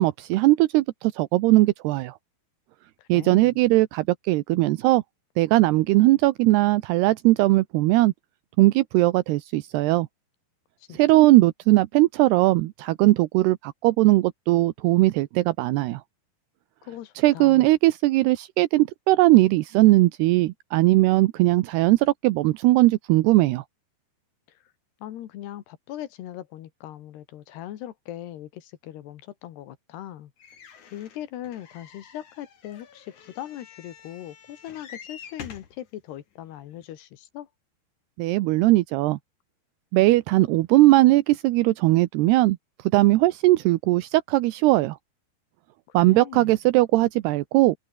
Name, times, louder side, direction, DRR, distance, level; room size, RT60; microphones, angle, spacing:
voice 1, 0.0-2.1 3.1-5.0 5.4-8.1 8.6-10.1 11.0-16.0 17.2-23.6 38.2-39.2 39.9-42.6 42.9-45.0 45.9-47.8, right 18 dB, 80° right, 2.8 m, -19 dB
voice 2, 3.0-3.6 10.8-11.3 16.8-17.7 24.5-24.6 25.0-30.3 30.9-37.5 45.9-46.5, left 12 dB, 80° left, 3.6 m, -40 dB
sound 1, 30.4-35.8 36.5-36.6 36.8-36.9, left 7 dB, 50° left, 4.0 m, -47 dB
open air
omnidirectional pair, 4.7 m